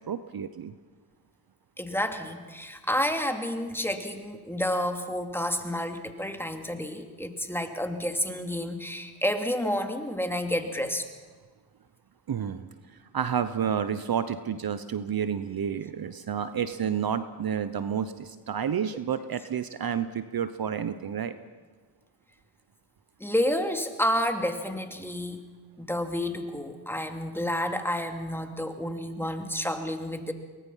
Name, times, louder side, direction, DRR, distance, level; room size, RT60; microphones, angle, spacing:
voice 1, 0.1-0.7 12.3-21.4, right 8 dB, 50° right, 12 dB, 1.0 m, -30 dB
voice 2, 1.8-11.0 23.2-25.4 25.8-30.3, left 1 dB, 5° left, 5 dB, 2.6 m, -30 dB
23.5 x 19.5 x 5.7 m, 1.5 s
supercardioid pair, 50°, 47 cm